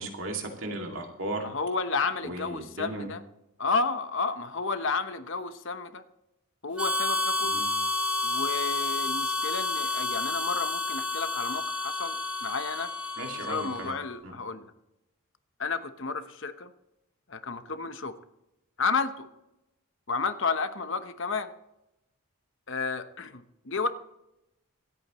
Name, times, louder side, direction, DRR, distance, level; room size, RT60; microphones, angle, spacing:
voice 1, 0.0-1.4 2.2-3.1 7.5-7.7 13.2-14.0 14.2-14.3, right 2 dB, 60° right, 2 dB, 2.4 m, -36 dB
voice 2, 1.4-3.2 3.6-6.0 6.6-7.6 8.2-12.9 13.3-14.7 15.6-16.7 17.3-18.1 18.8-19.3 20.1-21.5 22.7-23.9, left 4 dB, 55° left, 9 dB, 0.9 m, -31 dB
Harmonica, 6.8-14.0, left 3 dB, 5° right, 1.6 m, -30 dB
26.0 x 8.7 x 3.1 m, 0.90 s
head